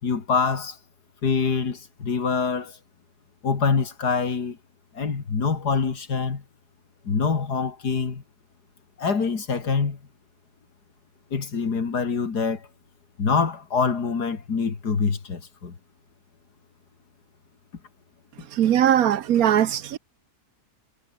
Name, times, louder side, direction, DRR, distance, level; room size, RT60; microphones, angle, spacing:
voice 1, 0.0-0.8 1.2-2.8 3.4-4.6 4.9-6.4 7.0-8.2 9.0-10.0 11.3-12.7 13.2-15.7, left 5 dB, 85° left, 3.0 m, -25 dB
voice 2, 18.5-20.0, right 10 dB, 70° right, 1.3 m, -20 dB
omnidirectional pair, 1.7 m